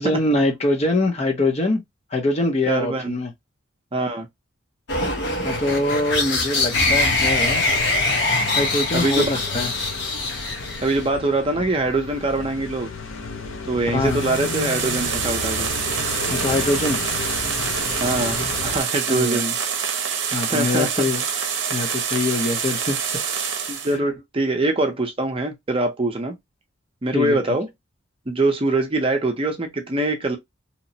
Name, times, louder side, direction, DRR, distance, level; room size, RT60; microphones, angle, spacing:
voice 1, 0.0-1.8 2.1-3.3 5.4-7.6 8.5-9.2 9.5-9.7 13.9-14.2 16.3-17.0 19.1-19.4 20.3-21.2 21.7-23.0 23.9-24.0 27.1-27.4, left 2 dB, 30° left, 0.6 m, -23 dB
voice 2, 2.7-3.1 3.9-4.3 8.9-9.6 10.8-12.9 13.7-15.7 18.0-19.6 20.5-21.0 23.7-26.3 27.0-27.7 28.3-30.4, right 2 dB, 25° right, 0.5 m, -23 dB
sound 1, 4.9-11.1, left 2 dB, 60° left, 0.9 m, -23 dB
sound 2, 6.7-18.8, left 4 dB, 75° left, 0.5 m, -32 dB
sound 3, 14.0-23.9, right 7 dB, 65° right, 0.6 m, -26 dB
2.9 x 2.0 x 2.6 m
head